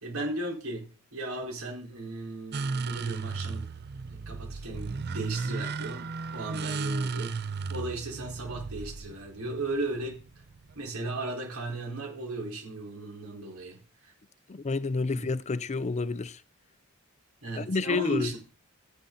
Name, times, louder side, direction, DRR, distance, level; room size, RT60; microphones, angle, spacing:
voice 1, 0.0-3.7 4.0-10.4 10.7-14.1 15.1-15.2 17.4-18.4, right 2 dB, 70° right, 4.2 m, -36 dB
sound 1, 2.5-10.9, right 4 dB, 50° right, 0.6 m, -35 dB
voice 2, 14.5-16.4 17.6-18.3, left 3 dB, 30° left, 0.5 m, -29 dB
13.5 x 10.0 x 3.9 m
head